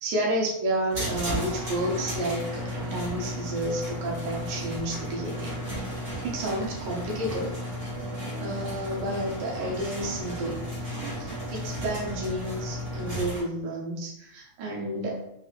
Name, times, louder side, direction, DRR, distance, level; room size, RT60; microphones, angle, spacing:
voice 1, 0.0-5.6 6.2-7.5 8.4-10.6 11.2-15.2, right 1 dB, 85° right, -2 dB, 2.5 m, -31 dB
sound 1, 0.9-13.4, equal, 45° right, 2.1 m, -34 dB
5.3 x 3.2 x 2.5 m, 0.78 s
omnidirectional pair, 3.4 m